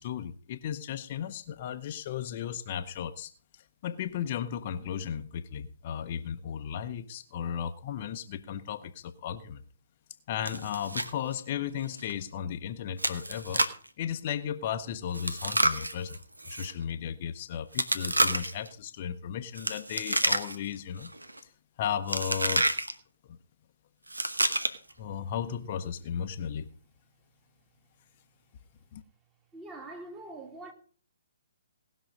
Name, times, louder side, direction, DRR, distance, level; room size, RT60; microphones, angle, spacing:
voice 1, 0.0-3.3 3.8-9.6 10.3-13.6 14.0-16.2 16.5-21.1 21.8-22.7 25.0-26.7 28.9-29.0, left 9 dB, 40° left, 0.7 m, -35 dB
Chewing mastication, 10.5-11.1 11.4-11.5 12.0-12.1 13.0-13.9 15.1-16.7 17.7-18.7 19.6-20.7 21.0-21.4 22.1-22.9 24.1-24.9, right 1 dB, 90° right, 1.1 m, -29 dB
voice 2, 29.5-30.7, right 2 dB, 15° right, 2.1 m, -43 dB
18.5 x 6.2 x 5.2 m
figure-of-eight pair, 130°, 0 cm